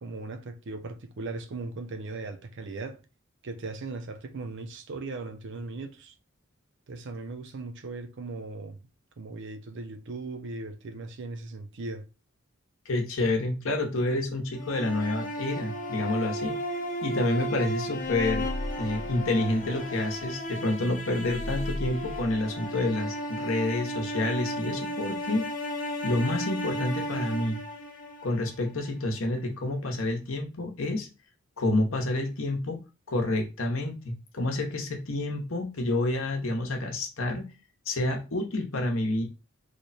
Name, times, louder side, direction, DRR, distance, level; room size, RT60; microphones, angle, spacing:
voice 1, 0.0-3.0 3.4-6.1 6.9-8.8 9.2-12.1, right 3 dB, 60° right, 0.5 m, -38 dB
voice 2, 12.9-16.6 17.0-18.5 18.8-25.5 26.0-27.6 28.2-31.1 31.6-32.8 33.1-37.5 37.9-39.2, left 2 dB, 65° left, 0.9 m, -28 dB
sound 1, 14.6-28.7, equal, 40° left, 0.7 m, -34 dB
sound 2, 18.0-20.4 20.7-20.8 21.2-22.4, left 1 dB, 25° left, 0.3 m, -37 dB
3.2 x 2.2 x 4.0 m
head